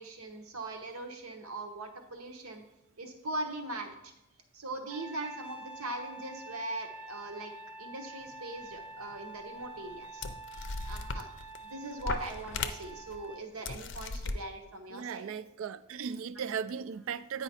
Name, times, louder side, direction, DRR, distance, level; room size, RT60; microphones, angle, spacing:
voice 1, 0.0-2.6 3.0-3.9 4.5-7.5 7.8-10.2 10.8-11.3 11.6-15.3, right 2 dB, 90° right, 5 dB, 1.0 m, -40 dB
Trumpet, 4.9-13.5, right 2 dB, 5° right, 0.4 m, -47 dB
pages flipping, 9.1-9.2 9.9-10.0 10.2-11.6 12.0-13.2 13.6-14.4, left 4 dB, 55° left, 0.5 m, -37 dB
voice 2, 10.6-10.9 14.9-17.4, right 7 dB, 70° right, 15 dB, 0.3 m, -37 dB
8.9 x 4.9 x 4.2 m, 0.88 s
head